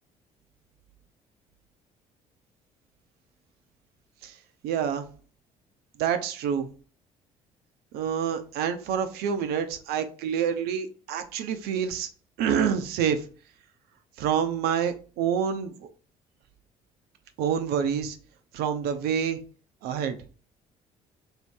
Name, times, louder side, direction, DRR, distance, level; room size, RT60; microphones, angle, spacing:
voice 1, 4.6-5.0 6.0-6.7 7.9-12.1 12.4-13.3 14.2-15.9 17.4-18.2 18.5-19.4 19.8-20.2, right 8 dB, 65° right, 0.6 m, -27 dB
3.2 x 2.8 x 4.6 m
hypercardioid pair, 50°, 18 cm